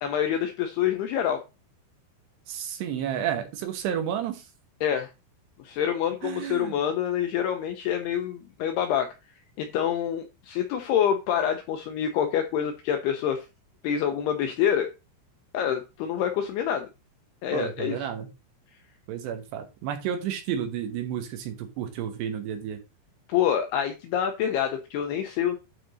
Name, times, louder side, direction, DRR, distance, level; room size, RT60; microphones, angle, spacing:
voice 1, 0.0-1.4 4.8-5.1 5.6-9.1 9.6-13.5 13.8-14.9 15.5-16.9 17.4-18.0 23.3-25.6, left 9 dB, 80° left, 6 dB, 2.3 m, -26 dB
voice 2, 2.5-4.5 6.2-6.8 17.5-18.3 19.1-22.8, right 9 dB, 75° right, 6 dB, 2.9 m, -31 dB
12.0 x 4.2 x 4.0 m, 0.27 s
omnidirectional pair, 5.5 m